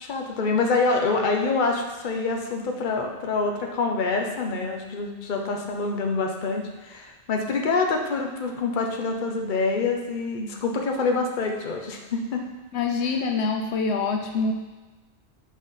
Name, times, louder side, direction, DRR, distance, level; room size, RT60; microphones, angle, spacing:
voice 1, 0.0-12.4, left 3 dB, 50° left, 2 dB, 1.0 m, -26 dB
voice 2, 12.7-14.5, left 4 dB, 75° left, 3 dB, 1.0 m, -25 dB
6.3 x 5.4 x 5.7 m, 1.2 s
omnidirectional pair, 1.1 m